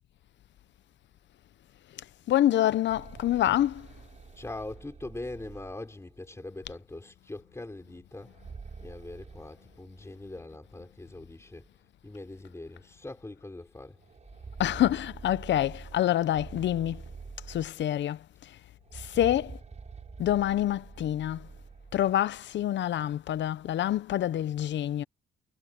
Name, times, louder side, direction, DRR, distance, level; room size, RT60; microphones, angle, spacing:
voice 1, 2.3-3.9 14.6-17.0 17.5-18.6 18.9-19.6 20.2-21.5 21.9-25.0, left 12 dB, 65° left, 0.7 m, -27 dB
sound 1, 2.5-6.3 8.1-10.3 10.6-10.7 11.6-11.7 12.2-12.3 14.0-18.1 18.8-22.2, right 5 dB, 35° right, 6.5 m, -47 dB
voice 2, 4.3-8.4 8.8-11.7 12.0-14.0, left 2 dB, 15° left, 5.1 m, -42 dB
cardioid pair, 90°, 20 cm